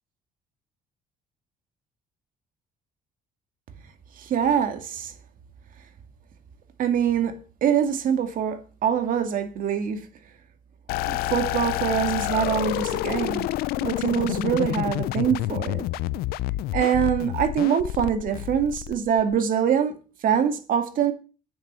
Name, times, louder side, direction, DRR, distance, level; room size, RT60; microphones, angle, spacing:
voice 1, 4.2-5.1 6.8-10.0 11.1-13.5 13.8-15.9 16.7-19.9 20.2-21.1, right 8 dB, 65° right, 2.2 m, -24 dB
sound 1, 10.9-19.3, left 16 dB, 85° left, 0.5 m, -28 dB
9.3 x 7.6 x 7.6 m
cardioid pair, 100°, 15 cm